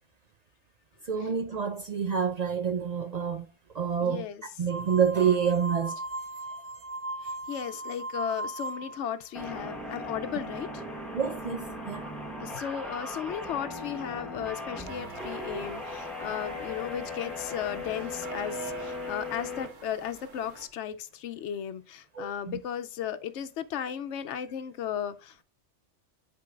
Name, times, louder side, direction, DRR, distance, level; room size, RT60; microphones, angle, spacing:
voice 1, 1.0-3.5 3.7-4.3 4.6-6.0 11.1-12.1 22.1-22.6, right 7 dB, 65° right, 0.4 m, -28 dB
voice 2, 4.0-4.4 7.2-10.8 12.4-25.4, left 9 dB, 75° left, 0.9 m, -35 dB
sound 1, 4.7-9.1, right 2 dB, 35° right, 0.7 m, -37 dB
sound 2, 9.3-19.7, left 2 dB, ahead, 1.1 m, -38 dB
sound 3, 14.9-20.7, right 6 dB, 90° right, 1.5 m, -45 dB
10.5 x 4.5 x 2.4 m
omnidirectional pair, 1.3 m